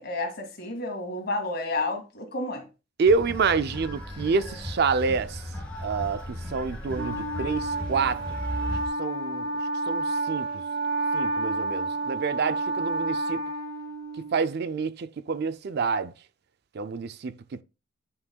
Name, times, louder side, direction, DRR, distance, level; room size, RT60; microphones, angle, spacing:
voice 1, 0.0-2.7, left 2 dB, 55° left, 2.1 m, -31 dB
sound 1, 3.0-8.9, left 1 dB, 5° left, 2.6 m, -36 dB
voice 2, 3.0-5.4 5.8-8.2 9.0-9.5 9.9-10.6 11.1-13.4 14.3-16.1 16.7-17.6, right 5 dB, 55° right, 0.5 m, -27 dB
Wind instrument woodwind instrument, 6.9-14.5, right 2 dB, 75° right, 2.8 m, -30 dB
9.4 x 5.8 x 2.3 m
head